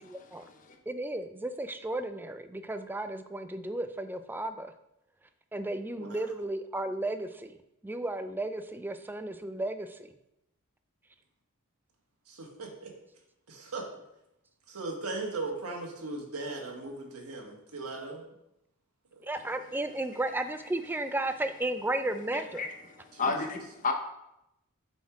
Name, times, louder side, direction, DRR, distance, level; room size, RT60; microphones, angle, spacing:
voice 1, 0.0-0.5 0.9-4.7 5.5-7.6 7.8-10.0 19.2-22.6, right 2 dB, 10° right, 9 dB, 0.3 m, -34 dB
voice 2, 12.3-12.9 13.5-13.9 14.7-18.2 23.1-23.4, right 3 dB, 75° right, 1 dB, 1.4 m, -38 dB
voice 3, 23.1-23.9, left 4 dB, 35° left, 4 dB, 0.8 m, -31 dB
7.0 x 4.4 x 4.7 m, 0.85 s
head